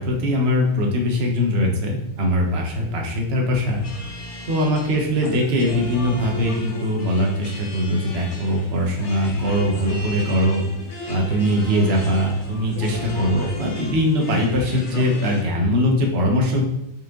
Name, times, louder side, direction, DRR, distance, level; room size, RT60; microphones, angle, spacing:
voice 1, 0.0-3.8 4.5-10.6 11.1-16.6, equal, 35° right, 0 dB, 1.1 m, -21 dB
sound 1, 3.7-15.4, left 2 dB, 45° left, 0.6 m, -35 dB
5.6 x 5.1 x 3.8 m, 0.82 s
omnidirectional pair, 2.3 m